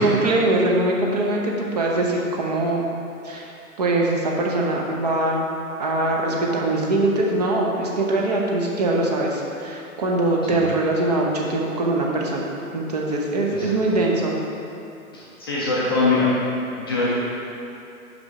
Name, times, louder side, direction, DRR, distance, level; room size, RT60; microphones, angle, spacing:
voice 1, 0.0-2.9 3.2-3.5 3.8-5.5 5.8-14.4, right 2 dB, 30° right, -2 dB, 0.7 m, -22 dB
voice 2, 15.1-16.3 16.8-17.1, left 3 dB, 15° left, -7 dB, 0.5 m, -22 dB
6.1 x 5.4 x 4.8 m, 2.7 s
figure-of-eight pair, 125°, 43 cm